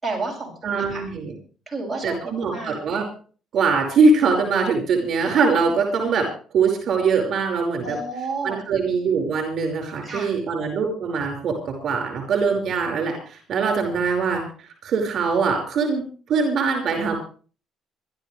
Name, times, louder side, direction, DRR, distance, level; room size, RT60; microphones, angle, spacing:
voice 1, 0.0-1.0 1.7-2.7 7.8-8.6 10.0-10.3, right 3 dB, 5° right, -2 dB, 7.0 m, -31 dB
voice 2, 0.6-1.3 2.0-3.0 3.5-6.3 6.5-8.0 8.4-14.4 14.8-17.2, right 4 dB, 50° right, 3 dB, 5.3 m, -22 dB
25.0 x 12.5 x 3.4 m, 0.39 s
cardioid pair, 145°, 0 cm